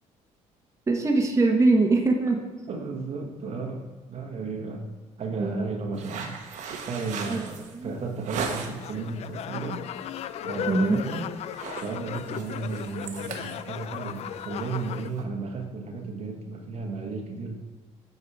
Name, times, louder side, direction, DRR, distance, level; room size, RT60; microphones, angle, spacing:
voice 1, 0.9-2.4 5.4-5.6 7.3-7.4 7.7-8.0 10.7-11.0, right 3 dB, 25° right, 1 dB, 1.1 m, -22 dB
voice 2, 2.7-4.8 5.2-6.4 6.9-9.9 10.4-11.3 11.8-17.6, right 4 dB, 55° right, 3 dB, 1.2 m, -34 dB
sound 1, 5.9-9.0 9.4-9.8 10.1-10.3 10.6-11.0 11.3-15.2, right 5 dB, 75° right, 1.1 m, -37 dB
sound 2, 8.8-15.1, left 10 dB, 55° left, 0.4 m, -36 dB
8.4 x 4.8 x 4.8 m, 1.4 s
cardioid pair, 95°, 13 cm